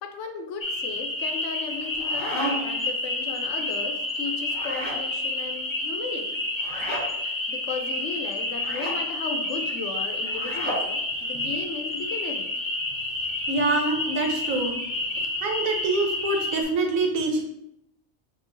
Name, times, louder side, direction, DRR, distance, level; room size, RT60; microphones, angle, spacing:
voice 1, 0.0-6.4 7.5-12.5, left 5 dB, 70° left, 4 dB, 0.9 m, -36 dB
sound 1, 0.6-16.6, left 2 dB, 50° left, 0.3 m, -30 dB
sound 2, 1.8-2.8 4.5-5.0 6.6-7.1 8.6-9.0 10.3-10.9, equal, 60° right, 1.9 m, -32 dB
voice 2, 13.5-15.0 15.4-17.4, right 2 dB, 85° right, 3 dB, 1.2 m, -25 dB
6.6 x 2.4 x 2.6 m, 0.80 s
omnidirectional pair, 1.4 m